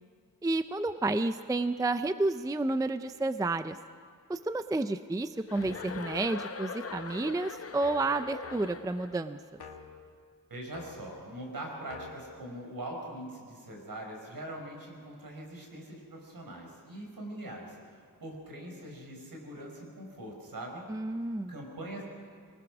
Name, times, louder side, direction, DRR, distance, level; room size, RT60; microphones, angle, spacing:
voice 1, 0.4-3.8 4.3-9.6 20.9-21.5, right 2 dB, 10° right, 11 dB, 0.4 m, -31 dB
Chuckle chortle, 5.5-9.2, left 5 dB, 40° left, 0.8 m, -41 dB
sound 1, 5.8-6.2 6.9-7.3 7.8-9.0 9.5-10.1 10.7-11.2 11.9-12.1, left 5 dB, 85° left, 1.8 m, -49 dB
voice 2, 10.5-20.8 21.5-22.0, right 1 dB, 65° right, 1 dB, 5.0 m, -42 dB
23.5 x 20.0 x 6.1 m, 2.1 s
wide cardioid pair, 145°, 37 cm